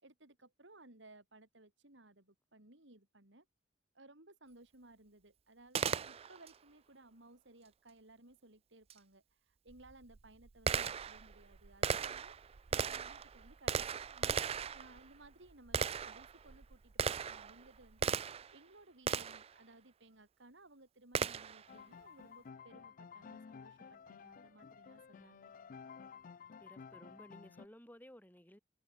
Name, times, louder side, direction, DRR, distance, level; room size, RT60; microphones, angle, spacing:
voice 1, 0.0-3.5 3.9-14.4 14.7-25.5, right 2 dB, 70° right, 4.0 m, -60 dB
Gunshot gunfire, 5.7-6.6 8.9-9.0 9.7-18.6 19.1-19.5 21.1-21.7, right 6 dB, 30° right, 0.4 m, -37 dB
sound 1, 21.7-27.7, left 6 dB, 45° left, 0.4 m, -53 dB
voice 2, 26.6-28.6, equal, 10° left, 5.3 m, -57 dB
head